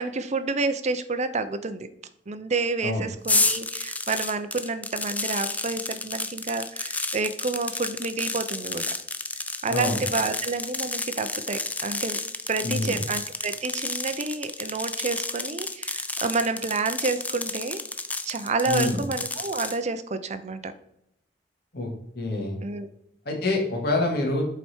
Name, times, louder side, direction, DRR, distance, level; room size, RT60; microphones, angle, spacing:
voice 1, 0.0-1.9 2.3-8.9 9.6-12.2 12.5-17.8 18.2-20.7 22.6-22.9, right 3 dB, 40° right, 10 dB, 0.6 m, -29 dB
sound 1, 3.2-19.8, left 3 dB, 10° left, 0.4 m, -31 dB
voice 2, 9.7-10.0 12.6-13.0 18.7-19.0 21.7-21.9 22.2-22.6 23.3-24.5, left 2 dB, 60° left, 1 dB, 2.0 m, -26 dB
7.9 x 4.6 x 4.4 m, 0.76 s
head